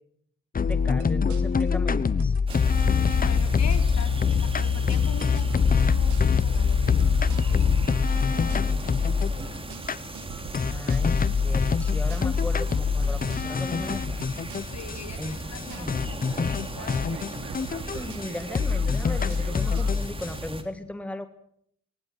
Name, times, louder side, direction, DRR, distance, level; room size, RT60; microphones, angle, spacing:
sound 1, 0.5-9.4 9.9-10.0 10.5-14.9 15.2-15.3 15.5-15.6 15.9-18.3 18.5-20.3, left 6 dB, 30° left, 1.0 m, -24 dB
voice 1, 0.7-2.3 10.7-14.3 15.2-15.5 15.7-16.0 17.9-21.3, left 1 dB, 5° left, 9 dB, 1.7 m, -37 dB
sound 2, 0.7-19.9, right 9 dB, 75° right, 1.7 m, -45 dB
sound 3, 2.5-20.6, right 1 dB, 20° right, 3.4 m, -38 dB
voice 2, 3.2-7.6 7.9-8.8 9.2-9.7 14.7-17.3 17.7-18.3, left 8 dB, 60° left, 6 dB, 4.0 m, -43 dB
20.5 x 20.0 x 8.9 m, 0.70 s
cardioid pair, 90°, 30 cm